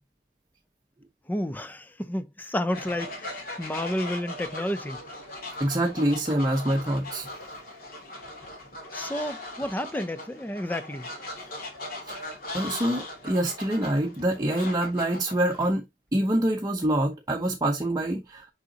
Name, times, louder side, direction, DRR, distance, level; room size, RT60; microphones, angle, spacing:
voice 1, 1.3-5.0 8.9-11.1, left 1 dB, 10° left, 0.5 m, -31 dB
Fowl, 2.7-15.7, left 2 dB, 55° left, 2.6 m, -39 dB
voice 2, 5.6-7.3 12.1-15.8 16.1-18.5, right 1 dB, 20° right, 0.8 m, -26 dB
6.6 x 5.0 x 2.8 m
head